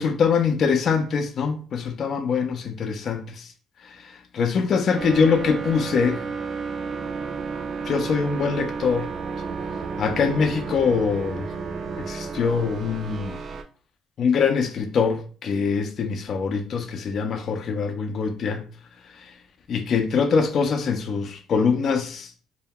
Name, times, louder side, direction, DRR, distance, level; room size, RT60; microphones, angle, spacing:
voice 1, 0.0-3.5 3.8-6.3 7.9-9.1 10.0-11.5 12.0-13.4 14.2-18.7 19.7-22.4, left 5 dB, 55° left, 0.4 m, -23 dB
sound 1, 5.0-13.6, right 5 dB, 50° right, 0.4 m, -32 dB
2.2 x 2.1 x 3.5 m
cardioid pair, 95°, 0 cm